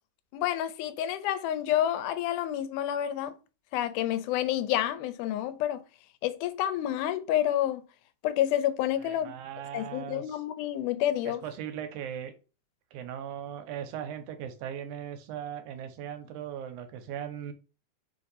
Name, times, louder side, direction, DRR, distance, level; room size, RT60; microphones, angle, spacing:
voice 1, 0.3-3.3 3.7-5.8 6.2-7.8 8.2-9.3 9.7-11.4, left 12 dB, 90° left, 2.0 m, -29 dB
voice 2, 9.0-10.4 11.3-12.3 12.9-17.5, right 9 dB, 90° right, 2.1 m, -38 dB
4.6 x 2.6 x 4.0 m
omnidirectional pair, 3.5 m